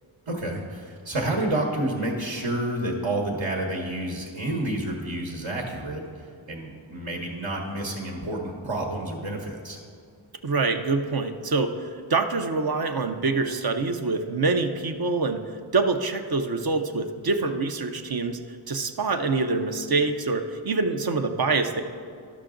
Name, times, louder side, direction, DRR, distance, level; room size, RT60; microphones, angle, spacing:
voice 1, 0.3-9.8, right 1 dB, 70° right, -1 dB, 1.2 m, -29 dB
voice 2, 10.4-15.4 15.7-18.4 18.7-21.8, right 3 dB, 50° right, 6 dB, 0.7 m, -25 dB
12.0 x 5.9 x 3.8 m, 2.3 s
wide cardioid pair, 40°, 47 cm